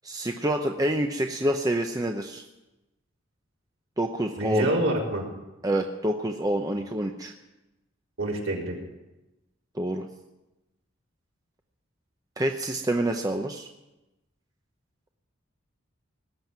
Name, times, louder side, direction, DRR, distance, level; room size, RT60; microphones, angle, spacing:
voice 1, 0.0-2.4 4.0-4.7 5.6-7.3 9.7-10.1 12.4-13.7, right 1 dB, 20° right, 3 dB, 0.8 m, -27 dB
voice 2, 4.4-5.2 8.2-8.8, right 1 dB, 75° right, -3 dB, 4.2 m, -26 dB
19.0 x 7.8 x 9.1 m, 1.0 s
head